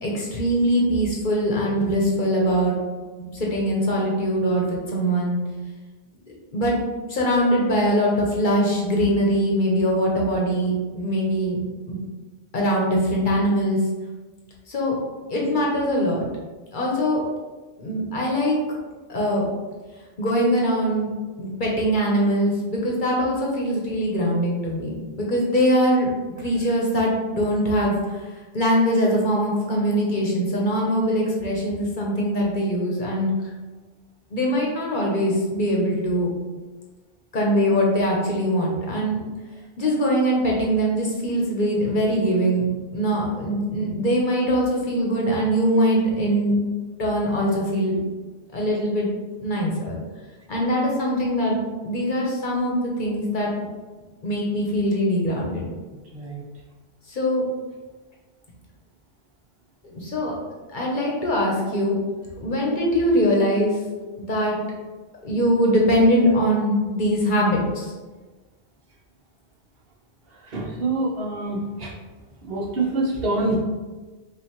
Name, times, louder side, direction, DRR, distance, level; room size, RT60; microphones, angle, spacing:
voice 1, 0.0-2.8 3.3-5.4 6.5-6.7 7.1-11.6 11.9-12.0 12.5-13.8 14.7-14.9 15.3-16.2 16.7-17.2 17.8-18.5 19.1-19.4 20.2-21.1 21.4-26.1 26.4-28.2 28.5-33.3 34.3-36.3 37.3-39.2 39.8-42.7 42.9-46.6 47.0-48.0 48.5-49.1 49.4-50.0 50.5-53.5 54.2-55.6 57.1-57.4 59.8-60.4 60.7-62.0 62.4-63.8 64.2-64.6 65.2-67.9, equal, 50° left, -2 dB, 1.0 m, -22 dB
voice 2, 70.5-71.6 72.5-73.6, right 2 dB, 60° right, -3 dB, 1.1 m, -25 dB
5.5 x 2.5 x 3.0 m, 1.3 s
omnidirectional pair, 1.1 m